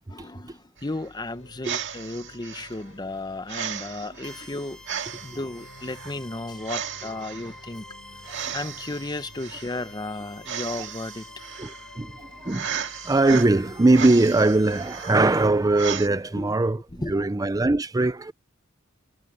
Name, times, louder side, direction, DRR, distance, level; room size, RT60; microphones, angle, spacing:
voice 1, 0.1-7.9 8.2-11.3 16.3-16.5 17.0-17.2 17.7-17.8, left 2 dB, 20° left, 0.8 m, -34 dB
sound 1, 0.8-16.1, right 8 dB, 65° right, 2.0 m, -36 dB
sound 2, 1.1-16.5, left 2 dB, 80° left, 5.6 m, -53 dB
sound 3, 4.2-15.5, left 1 dB, 5° left, 1.8 m, -47 dB
voice 2, 11.6-12.7 13.0-16.8 17.1-18.3, right 2 dB, 20° right, 0.5 m, -21 dB
head